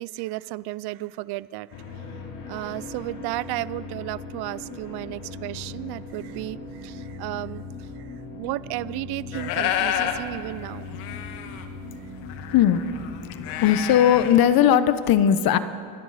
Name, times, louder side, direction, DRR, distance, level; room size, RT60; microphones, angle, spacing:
voice 1, 0.0-1.8 2.5-10.9, right 18 dB, 55° right, 19 dB, 0.5 m, -34 dB
sound 1, 1.7-14.3, left 3 dB, 65° left, 3.4 m, -39 dB
sound 2, 9.3-10.2 10.6-10.7 10.8-14.5, left 10 dB, 85° left, 1.5 m, -30 dB
voice 2, 12.5-12.8 13.6-15.6, left 10 dB, 45° left, 13 dB, 1.0 m, -18 dB
27.0 x 12.5 x 4.2 m, 2.6 s
cardioid pair, 120°, 48 cm